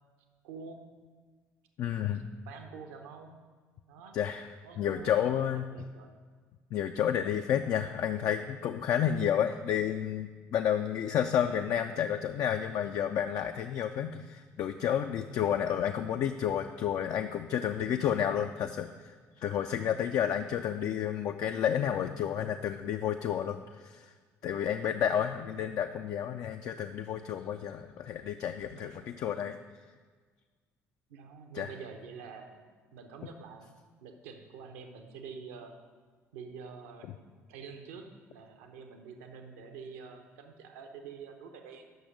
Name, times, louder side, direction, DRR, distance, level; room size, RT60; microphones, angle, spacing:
voice 1, 0.4-0.8 2.5-3.3 3.9-4.2 4.6-6.1 7.6-7.7 15.3-15.6 28.6-29.1 31.1-33.7 34.0-35.7 36.3-37.2 37.5-41.8, right 5 dB, 65° right, 5 dB, 0.8 m, -47 dB
voice 2, 1.8-2.2 4.1-4.5 4.8-5.6 6.7-24.1 24.4-29.6 31.5-31.7, left 9 dB, 45° left, 6 dB, 0.4 m, -31 dB
7.9 x 6.4 x 5.2 m, 1.5 s
figure-of-eight pair, 55°, 8 cm